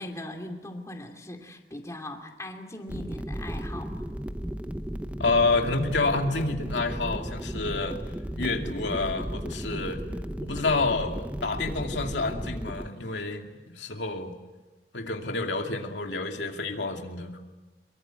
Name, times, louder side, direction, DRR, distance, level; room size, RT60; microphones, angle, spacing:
voice 1, 0.0-4.1, left 1 dB, 20° left, 3 dB, 2.6 m, -40 dB
sound 1, 2.9-12.9, equal, 10° right, 0.8 m, -35 dB
voice 2, 5.2-8.0 8.3-10.0 10.4-13.5 13.8-14.3 14.9-17.3, left 3 dB, 90° left, 3 dB, 2.6 m, -28 dB
24.5 x 23.0 x 9.0 m, 1.2 s
head